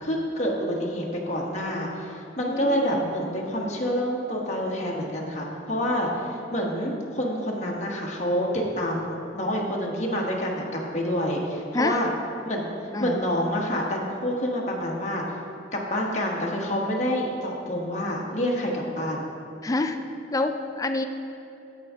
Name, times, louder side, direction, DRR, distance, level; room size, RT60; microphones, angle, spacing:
voice 1, 0.0-12.1 12.4-12.7 13.0-15.2 15.7-19.3, equal, 35° left, -2 dB, 1.3 m, -27 dB
voice 2, 2.4-3.1 11.7-12.0 12.9-13.2 19.6-20.0 20.3-21.1, left 2 dB, 20° left, 7 dB, 0.4 m, -27 dB
9.3 x 8.3 x 3.6 m, 2.8 s
head